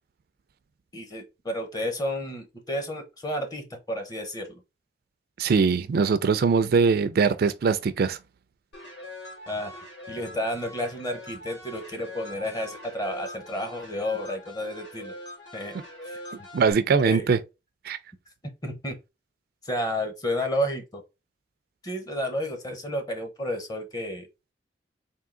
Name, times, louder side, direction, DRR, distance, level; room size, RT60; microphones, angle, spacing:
voice 1, 0.9-4.6 9.5-15.2 15.5-15.8 16.0-16.2 17.0-17.3 18.6-19.0 19.6-21.0 21.8-24.3, left 1 dB, 20° left, 0.8 m, -31 dB
voice 2, 5.4-8.2 16.5-17.4 17.8-18.0, right 5 dB, 55° right, 0.3 m, -22 dB
sound 1, 8.7-16.7, left 1 dB, 65° left, 2.3 m, -42 dB
3.6 x 2.7 x 3.7 m
head